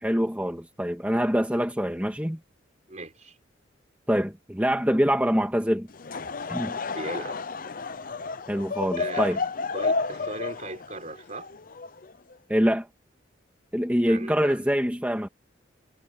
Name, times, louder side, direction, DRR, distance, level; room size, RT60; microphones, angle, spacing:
voice 1, 0.0-2.4 4.1-5.9 6.5-6.7 8.5-9.4 12.5-12.9 13.7-15.3, equal, 10° right, 2.0 m, -25 dB
voice 2, 2.9-3.4 6.9-7.4 9.0-9.4 9.7-11.5 14.0-14.6, right 2 dB, 40° right, 4.3 m, -37 dB
Laughter / Crowd, 5.9-12.3, left 4 dB, 50° left, 0.7 m, -31 dB
head